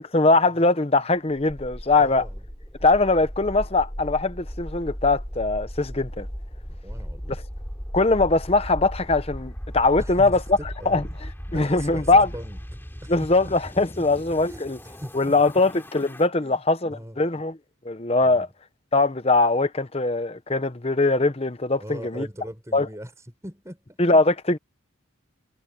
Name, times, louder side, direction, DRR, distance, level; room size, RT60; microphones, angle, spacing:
voice 1, 0.0-2.2 2.8-6.3 7.9-10.4 10.9-11.0 11.5-12.3 13.1-14.8 15.1-17.6 17.8-18.5 18.9-22.3 22.7-22.9 24.0-24.6, left 3 dB, 30° left, 0.9 m, -21 dB
sound 1, 1.5-16.3, equal, 10° left, 3.8 m, -37 dB
voice 2, 1.9-2.4 6.7-7.4 10.0-11.1 11.5-12.6 13.0-13.5 14.4-15.6 16.4-17.2 18.2-18.5 21.8-24.0, equal, 15° right, 5.7 m, -40 dB
head